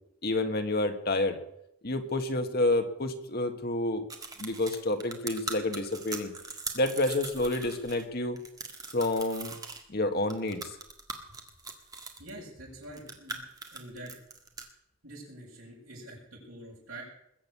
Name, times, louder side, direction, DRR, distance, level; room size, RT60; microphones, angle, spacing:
voice 1, 0.2-1.4 1.8-4.0 4.4-6.3 6.7-8.4 8.9-9.5 9.9-10.6, left 2 dB, 45° left, 6 dB, 1.5 m, -29 dB
sound 1, 4.1-8.0 8.4-9.8 10.3-12.3 12.8-14.7, right 4 dB, 15° right, 1.8 m, -40 dB
voice 2, 12.2-13.4 13.7-14.1 15.0-17.0, right 1 dB, 75° right, -9 dB, 6.5 m, -45 dB
21.0 x 7.8 x 8.4 m, 0.79 s
head